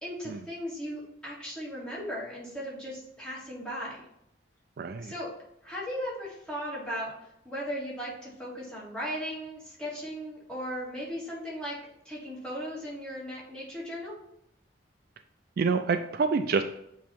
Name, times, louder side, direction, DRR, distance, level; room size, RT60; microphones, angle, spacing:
voice 1, 0.0-4.0 5.0-5.3 5.6-7.1 7.4-11.8 12.1-14.2, equal, 5° left, -7 dB, 1.9 m, -37 dB
voice 2, 4.8-5.1 15.6-16.6, right 4 dB, 50° right, 8 dB, 0.3 m, -27 dB
7.3 x 3.1 x 4.4 m, 0.77 s
head